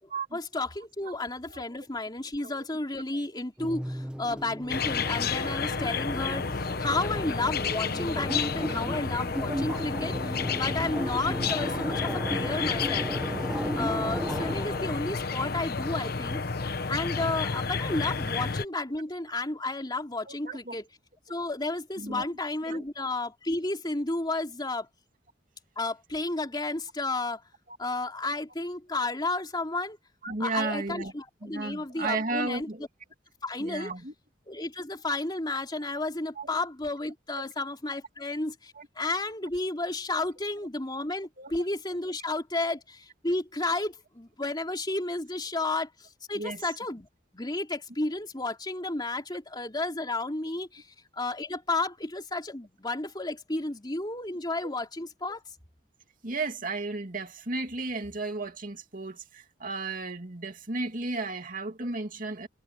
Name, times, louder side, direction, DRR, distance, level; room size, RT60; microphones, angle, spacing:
voice 1, 0.0-13.1 13.7-16.4 16.9-20.9 21.3-24.9 25.8-27.4 27.8-30.0 30.4-32.7 33.4-33.9 34.5-47.1 47.3-50.9 51.1-55.4, left 2 dB, 25° left, 3.3 m, -32 dB
sound 1, 3.6-15.1, equal, 5° right, 1.2 m, -36 dB
sound 2, 4.7-18.6, left 5 dB, 55° left, 1.1 m, -31 dB
voice 2, 20.3-20.7 22.0-22.2 22.7-22.9 30.2-31.1 31.4-32.8 33.6-34.1 36.4-36.5 37.4-37.5 38.8-38.9 41.4-41.5 46.3-46.6 56.2-62.5, right 3 dB, 50° right, 2.8 m, -34 dB
head